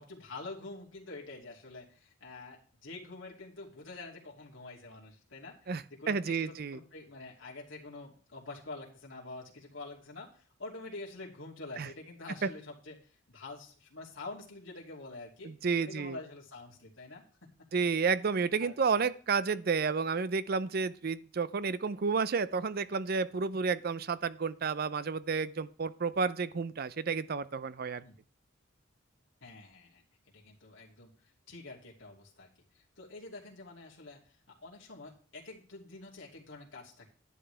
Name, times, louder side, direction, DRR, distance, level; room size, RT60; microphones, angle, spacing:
voice 1, 0.0-12.9 13.3-15.5 15.8-17.2 18.6-19.0 28.0-28.2 29.4-30.0 30.3-32.5 33.0-34.2 34.5-37.1, left 3 dB, 75° left, -3 dB, 2.8 m, -47 dB
voice 2, 5.7-6.8 11.8-11.9 15.4-16.2 17.7-28.0, right 5 dB, 50° right, 15 dB, 0.5 m, -31 dB
11.0 x 10.5 x 3.4 m, 0.42 s
head